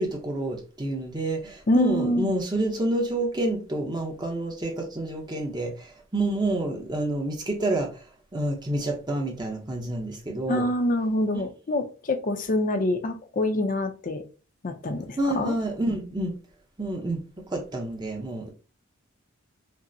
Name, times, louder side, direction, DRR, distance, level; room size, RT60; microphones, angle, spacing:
voice 1, 0.0-8.0 8.3-10.7 11.3-11.4 15.2-16.3 16.8-17.2 17.5-18.5, right 1 dB, 20° right, 1 dB, 0.6 m, -28 dB
voice 2, 1.7-2.3 10.5-14.2 14.6-15.5, left 1 dB, 40° left, 7 dB, 0.5 m, -26 dB
5.2 x 2.0 x 2.6 m, 0.36 s
head